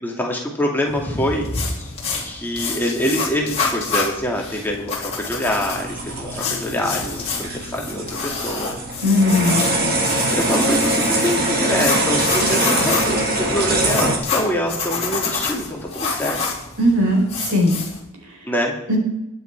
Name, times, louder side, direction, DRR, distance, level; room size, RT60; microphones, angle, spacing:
voice 1, 0.0-1.9 2.2-8.7 10.3-16.4 18.4-18.7, equal, 10° left, -1 dB, 2.3 m, -25 dB
sound 1, 0.9-18.0, left 4 dB, 25° left, 2.9 m, -28 dB
sound 2, 5.4-14.2, right 1 dB, 45° right, 2.4 m, -23 dB
voice 2, 9.0-9.6 16.8-17.7 18.9-19.0, left 1 dB, 90° right, 1 dB, 4.6 m, -17 dB
20.5 x 8.1 x 4.6 m, 0.89 s
head